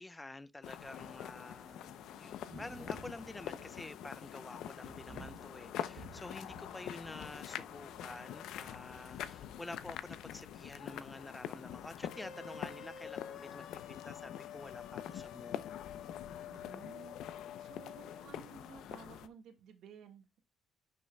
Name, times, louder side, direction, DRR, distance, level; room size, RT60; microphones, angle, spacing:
voice 1, 0.0-15.7, left 2 dB, 10° left, 0.4 m, -49 dB
sound 1, 0.6-19.3, left 10 dB, 90° left, 0.6 m, -45 dB
Thunder, 1.4-19.3, right 4 dB, 35° right, 1.0 m, -60 dB
sound 2, 12.1-18.2, left 8 dB, 70° left, 1.1 m, -49 dB
voice 2, 16.5-20.4, right 7 dB, 75° right, 1.6 m, -55 dB
10.5 x 6.2 x 2.3 m
cardioid pair, 155°, 0 cm